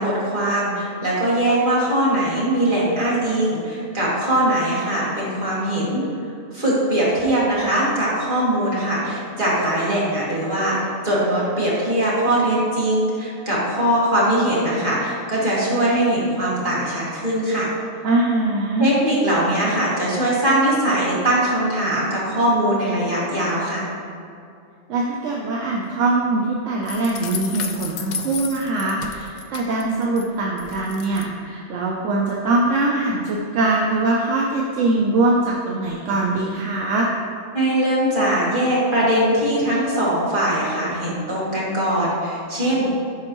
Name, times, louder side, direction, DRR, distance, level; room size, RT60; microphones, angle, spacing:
voice 1, 0.0-6.0 6.5-10.8 11.0-17.7 18.8-23.9 37.5-42.9, right 1 dB, 40° right, -7 dB, 2.0 m, -21 dB
voice 2, 18.0-18.9 24.9-37.1, right 2 dB, 75° right, -2 dB, 1.0 m, -22 dB
sound 1, 26.9-30.2 30.6-31.3, left 6 dB, 80° left, 0.4 m, -33 dB
10.5 x 4.3 x 3.0 m, 2.5 s
omnidirectional pair, 1.3 m